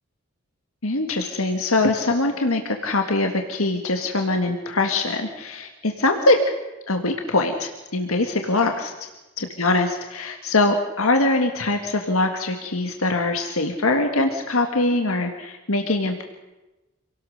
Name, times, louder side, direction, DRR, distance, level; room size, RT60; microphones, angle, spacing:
voice 1, 0.8-6.4 6.9-8.9 9.4-16.2, left 2 dB, 85° left, 4 dB, 1.9 m, -22 dB
27.0 x 18.5 x 6.6 m, 1.1 s
head